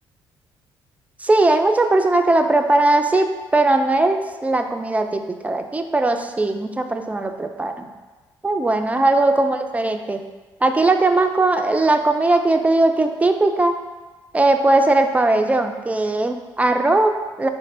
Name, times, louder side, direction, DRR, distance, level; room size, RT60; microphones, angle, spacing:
voice 1, 1.2-7.9 8.4-10.2 10.6-13.7 14.3-17.5, right 2 dB, 10° right, 6 dB, 0.4 m, -19 dB
3.8 x 3.2 x 3.7 m, 1.3 s
figure-of-eight pair, 45°, 12 cm